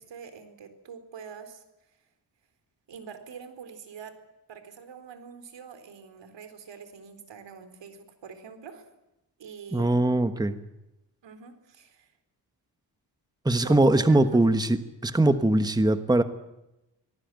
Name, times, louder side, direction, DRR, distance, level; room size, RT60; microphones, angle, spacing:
voice 1, 0.0-1.6 2.9-4.1 4.5-8.9 9.4-10.1 11.2-12.1 13.6-14.4, right 6 dB, 85° right, 9 dB, 4.1 m, -45 dB
voice 2, 9.7-10.5 13.4-14.8 15.0-16.2, right 2 dB, 10° right, 10 dB, 1.3 m, -21 dB
24.0 x 18.5 x 9.2 m, 0.92 s
wide cardioid pair, 140°, 42 cm